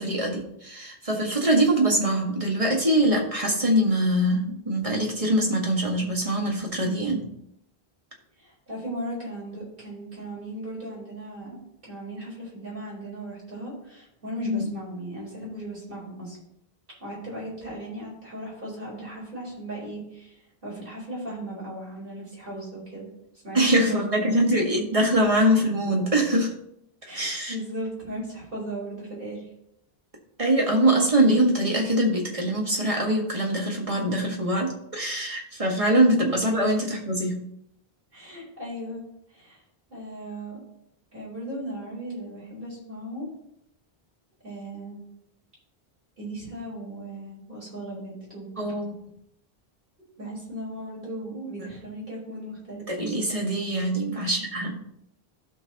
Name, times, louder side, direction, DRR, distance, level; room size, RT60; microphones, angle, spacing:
voice 1, 0.0-7.3 14.4-14.7 23.5-26.5 27.1-27.5 30.4-37.4 48.6-48.9 52.9-54.8, right 1 dB, 35° right, 0 dB, 1.8 m, -23 dB
voice 2, 8.4-16.4 17.0-23.1 23.4-24.5 27.0-29.5 38.1-39.0 39.3-39.6 39.9-40.6 41.1-43.3 44.4-45.0 46.2-48.5 50.2-52.8, right 1 dB, 55° right, -5 dB, 4.6 m, -37 dB
16.0 x 5.8 x 3.0 m, 0.76 s
omnidirectional pair, 1.1 m